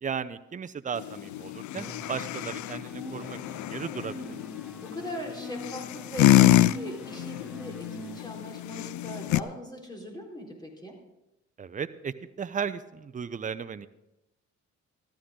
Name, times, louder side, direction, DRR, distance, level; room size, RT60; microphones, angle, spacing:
voice 1, 0.0-4.3 11.6-13.9, right 6 dB, 25° right, 12 dB, 0.6 m, -35 dB
sound 1, 0.9-9.4, left 15 dB, 70° left, 0.4 m, -27 dB
sound 2, 1.8-8.2, equal, 5° right, 1.1 m, -43 dB
voice 2, 4.8-11.0, left 1 dB, 15° left, -1 dB, 4.1 m, -40 dB
14.5 x 13.0 x 3.8 m, 0.92 s
cardioid pair, 90°, 30 cm